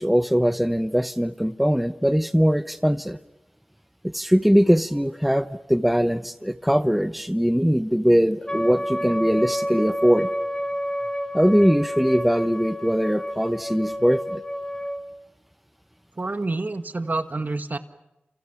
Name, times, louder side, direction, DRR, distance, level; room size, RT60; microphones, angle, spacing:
voice 1, 0.0-3.2 4.1-10.3 11.3-14.4, equal, ahead, 11 dB, 0.8 m, -21 dB
Wind instrument woodwind instrument, 8.5-15.0, equal, 25° left, 2.2 m, -29 dB
voice 2, 16.2-17.8, right 2 dB, 55° right, 9 dB, 1.5 m, -28 dB
29.5 x 27.5 x 6.0 m, 0.94 s
wide cardioid pair, 45°, 4 cm